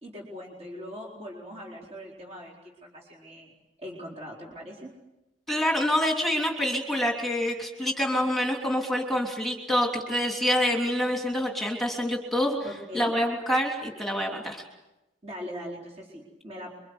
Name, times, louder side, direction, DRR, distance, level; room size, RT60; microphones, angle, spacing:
voice 1, 0.0-3.5 3.8-4.9 7.5-7.6 12.6-13.1 15.2-16.7, equal, 35° right, -2 dB, 4.4 m, -41 dB
voice 2, 5.5-12.6 12.9-14.6, equal, ahead, 0 dB, 3.1 m, -26 dB
28.0 x 24.0 x 8.1 m, 0.98 s
head